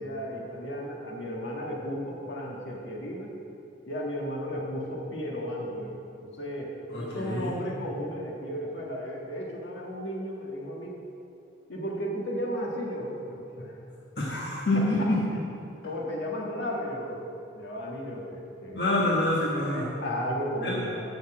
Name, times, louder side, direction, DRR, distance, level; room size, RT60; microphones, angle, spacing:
voice 1, 0.0-3.3 3.9-5.9 6.2-10.9 11.7-13.8 14.7-15.1 15.8-18.9 19.6-21.0, equal, 75° left, -3 dB, 1.6 m, -34 dB
voice 2, 6.9-7.5 14.2-15.2 18.7-19.8 20.6-20.8, left 1 dB, 60° left, -5 dB, 1.3 m, -26 dB
7.0 x 6.4 x 7.5 m, 2.6 s
head